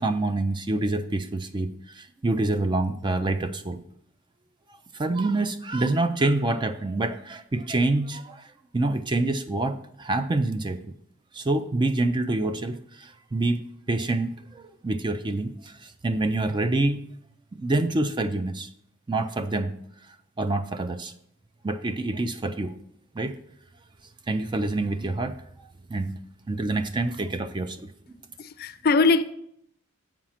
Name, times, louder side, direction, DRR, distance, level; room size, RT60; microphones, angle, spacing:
voice 1, 0.0-3.8 4.9-10.9 11.3-13.6 13.9-17.0 17.5-18.7 19.1-19.7 20.4-21.1 21.6-22.7 23.1-23.3 24.3-25.4 25.9-26.2 26.5-27.9, right 2 dB, 20° right, 0.4 m, -26 dB
voice 2, 28.4-29.2, left 3 dB, 45° left, 0.4 m, -21 dB
7.5 x 4.9 x 5.7 m
head